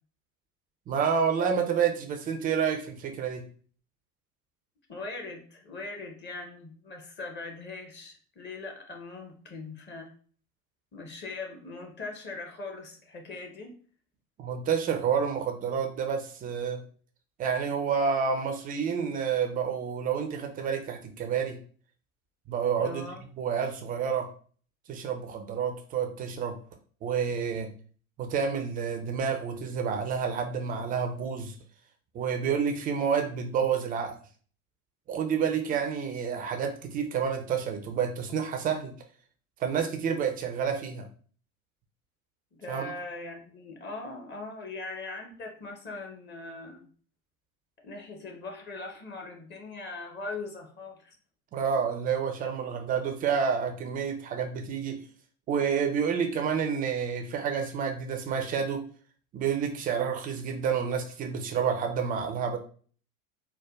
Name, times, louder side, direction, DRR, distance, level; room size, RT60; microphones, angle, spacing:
voice 1, 0.9-3.4 14.4-16.8 17.4-21.6 22.5-23.0 23.4-24.3 24.9-26.6 27.0-27.7 28.2-31.5 32.1-34.2 35.1-38.9 39.6-41.1 42.7-42.9 51.5-55.0 55.5-58.8 59.3-62.6, right 7 dB, 20° right, 4 dB, 0.4 m, -29 dB
voice 2, 4.9-10.1 10.9-13.7 22.8-23.3 35.7-35.8 42.5-46.9 47.8-51.1, left 3 dB, 25° left, 2 dB, 0.7 m, -40 dB
4.4 x 2.2 x 2.2 m, 0.43 s
figure-of-eight pair, 80°, 44 cm